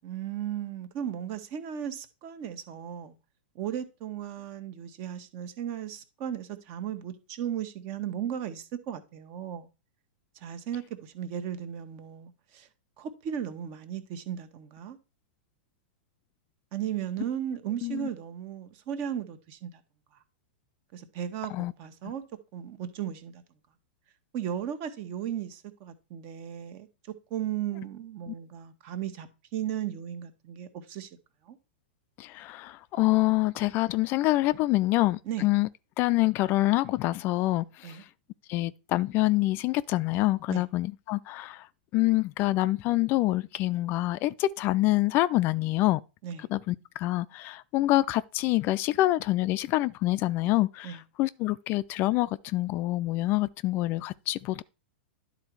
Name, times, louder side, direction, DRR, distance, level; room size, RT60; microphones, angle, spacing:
voice 1, 0.0-3.1 3.5-9.7 10.3-12.7 13.0-15.0 16.7-19.8 20.9-22.2 22.5-23.4 24.3-26.9 27.3-29.3 29.5-31.1 31.4-31.6 35.2-35.5 37.8-38.0 40.5-40.6 46.2-46.5 50.8-51.0, right 9 dB, 45° right, 1.2 m, -36 dB
voice 2, 32.2-35.7 36.0-38.0 38.5-41.7 41.9-46.0 46.5-54.6, left 17 dB, 40° left, 0.3 m, -26 dB
10.5 x 4.0 x 4.6 m
hypercardioid pair, 110°, 6 cm